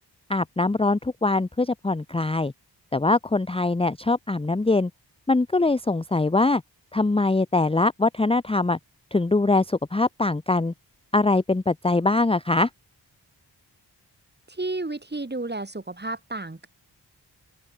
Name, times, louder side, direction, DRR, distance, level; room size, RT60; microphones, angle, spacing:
voice 1, 0.3-2.5 2.9-4.9 5.3-6.6 6.9-8.8 9.1-10.7 11.1-12.7, left 3 dB, 15° left, 0.6 m, -22 dB
voice 2, 14.5-16.7, right 2 dB, 25° right, 2.3 m, -32 dB
open air
wide cardioid pair, 100°, 43 cm